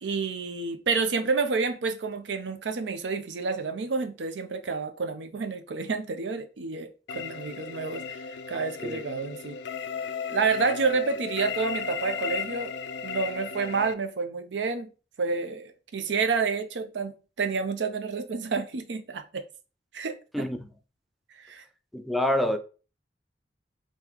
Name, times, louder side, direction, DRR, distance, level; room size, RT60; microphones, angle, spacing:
voice 1, 0.0-9.6 10.3-12.7 13.0-14.9 15.2-19.4 19.9-20.5 21.4-21.6, right 4 dB, 85° right, 0.5 m, -29 dB
sound 1, 7.1-13.9, left 6 dB, 85° left, 0.3 m, -35 dB
voice 2, 20.3-20.7 21.9-22.6, left 1 dB, ahead, 0.3 m, -27 dB
3.8 x 2.6 x 2.9 m
head